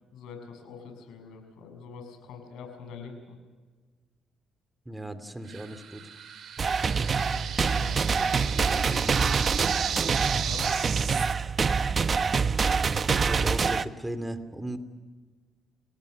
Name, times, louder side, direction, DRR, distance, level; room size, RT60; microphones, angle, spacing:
voice 1, 0.1-3.4 7.1-9.7 10.4-10.7, left 5 dB, 85° left, 5 dB, 6.6 m, -44 dB
voice 2, 4.8-6.1 13.2-14.8, right 1 dB, 10° right, 10 dB, 2.8 m, -36 dB
sound 1, 5.5-11.3, right 7 dB, 65° right, 3.5 m, -35 dB
sound 2, 6.6-13.8, right 5 dB, 40° right, 0.9 m, -25 dB
29.0 x 18.5 x 6.6 m, 1.4 s
cardioid pair, 90°, 0 cm